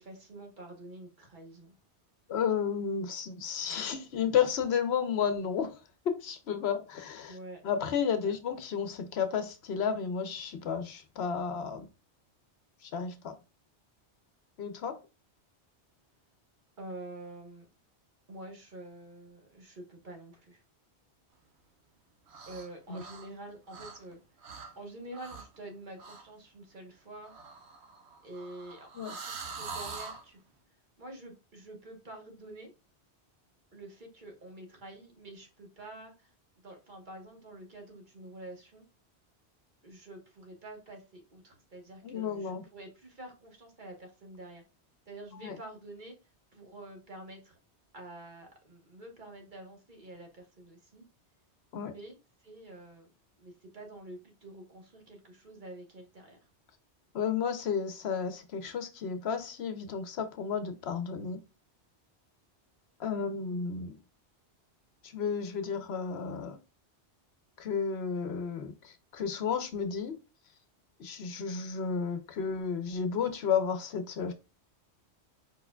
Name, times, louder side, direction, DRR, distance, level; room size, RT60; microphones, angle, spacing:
voice 1, 0.0-1.8 7.3-7.6 8.2-8.4 16.8-17.7 18.3-20.6 22.5-24.2 24.7-27.4 28.2-30.4 31.0-32.7 33.7-36.3 36.6-38.8 39.8-44.6 45.1-46.2 46.5-47.6 47.9-51.0 51.8-53.1 53.4-56.5, right 1 dB, 45° right, 1.2 m, -47 dB
voice 2, 2.3-5.8 6.0-7.4 7.6-11.9 12.8-13.3 14.6-15.0 22.9-23.0 29.0-29.1 42.0-42.6 45.4-45.6 51.7-51.9 57.1-61.4 63.0-64.0 65.0-66.6 67.6-70.2 71.0-74.3, left 7 dB, 70° left, 0.9 m, -32 dB
sound 1, 22.3-22.7 22.9-24.1 24.4-24.7 25.1-25.6 26.0-26.2 27.2-30.2, right 4 dB, 70° right, 1.1 m, -44 dB
4.9 x 4.7 x 2.2 m
omnidirectional pair, 1.1 m